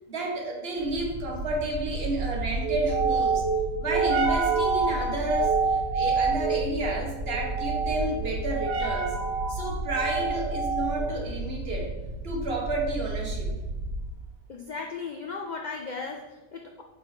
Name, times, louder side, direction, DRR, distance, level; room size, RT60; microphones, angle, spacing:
voice 1, 0.1-3.5 3.8-9.1 9.5-11.9 12.2-13.5, right 2 dB, 50° right, 0 dB, 1.3 m, -31 dB
sound 1, 0.8-14.2, right 4 dB, 85° right, 1.3 m, -28 dB
voice 2, 14.5-16.8, left 4 dB, 80° left, 3 dB, 0.4 m, -36 dB
8.2 x 4.0 x 3.2 m, 1.1 s
omnidirectional pair, 1.4 m